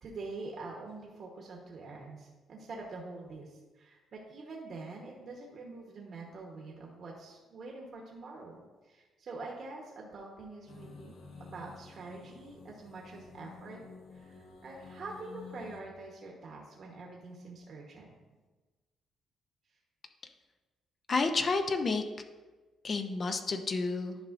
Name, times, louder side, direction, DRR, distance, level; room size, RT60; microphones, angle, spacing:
voice 1, 0.0-8.6 8.8-13.8 14.1-18.1, right 3 dB, 55° right, -2 dB, 1.0 m, -45 dB
sound 1, 10.7-15.8, left 4 dB, 70° left, 1.1 m, -51 dB
voice 2, 21.1-22.0 22.8-24.2, left 3 dB, 40° left, 7 dB, 0.6 m, -30 dB
10.5 x 4.8 x 2.5 m, 1.3 s
cardioid pair, 90°, 0 cm